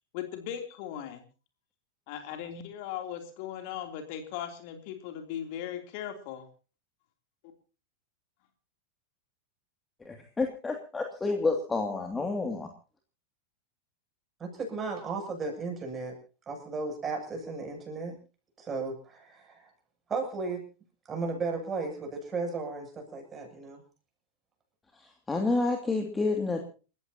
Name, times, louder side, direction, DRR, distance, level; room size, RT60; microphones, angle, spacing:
voice 1, 0.1-1.2 2.1-6.4, left 10 dB, 45° left, 4 dB, 3.2 m, -38 dB
voice 2, 10.0-12.7 25.0-26.6, left 3 dB, 10° left, 3 dB, 2.5 m, -29 dB
voice 3, 14.4-16.2 16.5-18.2 18.6-19.7 20.1-20.7 21.1-23.8, right 4 dB, 20° right, 2 dB, 8.0 m, -35 dB
30.0 x 15.0 x 2.9 m, 0.37 s
figure-of-eight pair, 90°, 0 cm